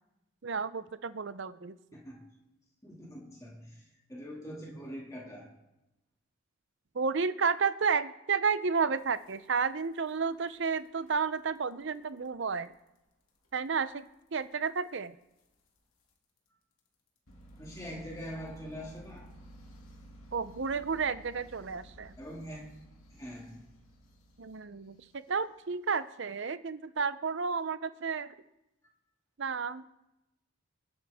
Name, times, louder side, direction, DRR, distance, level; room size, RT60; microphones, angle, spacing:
voice 1, 0.4-1.8 6.9-12.7 13.5-14.0 14.3-15.1 20.3-22.2 24.4-28.3 29.4-29.9, right 5 dB, 60° right, 14 dB, 0.6 m, -32 dB
voice 2, 1.9-2.2 2.8-5.5 17.6-19.3 22.2-22.7 23.1-23.6, equal, 15° left, -3 dB, 2.3 m, -43 dB
sound 1, 9.0-10.1 10.5-10.7 11.1-11.3 11.5-11.6 11.9-12.0 12.6-12.7 13.4-13.5 14.0-14.1 15.4-15.5 16.1-16.2 17.3-25.6, right 1 dB, 90° left, 2.4 m, -54 dB
24.0 x 9.2 x 3.6 m, 0.93 s
head